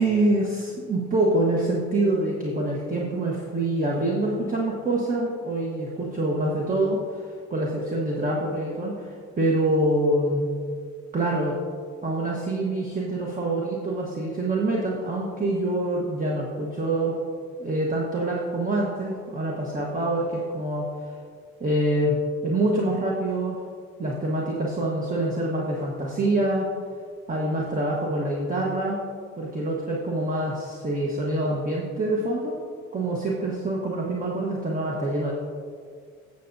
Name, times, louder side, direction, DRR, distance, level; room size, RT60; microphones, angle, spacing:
voice 1, 0.0-10.5 11.1-11.6 12.0-17.2 17.6-20.9 21.6-22.2 22.4-23.6 24.0-26.7 27.3-29.0 29.4-32.6 32.9-35.3, right 1 dB, 30° right, -3 dB, 1.2 m, -25 dB
15.0 x 6.8 x 2.7 m, 2.1 s
cardioid pair, 90°, 30 cm